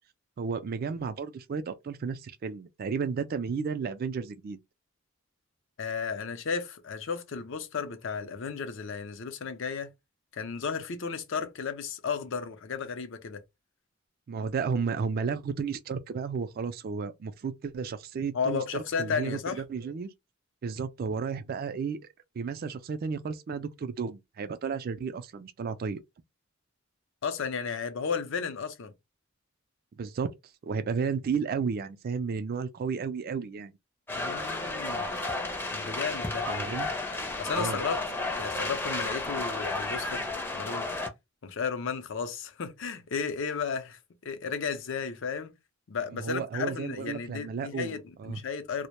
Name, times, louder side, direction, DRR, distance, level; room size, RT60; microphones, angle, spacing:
voice 1, 0.4-4.6 14.3-20.1 20.6-22.0 22.4-26.0 30.0-30.3 30.6-33.7 36.5-36.9 37.5-37.8 46.1-48.4, right 5 dB, 50° right, 0.3 m, -33 dB
voice 2, 5.8-9.9 10.3-13.4 18.3-19.6 27.2-28.9 34.1-35.1 35.7-36.5 37.4-38.0 38.4-40.3 40.5-40.9 41.4-45.6 45.9-48.9, left 5 dB, 65° left, 0.5 m, -34 dB
sound 1, 34.1-41.1, left 2 dB, 10° left, 0.5 m, -32 dB
2.1 x 2.1 x 2.9 m
head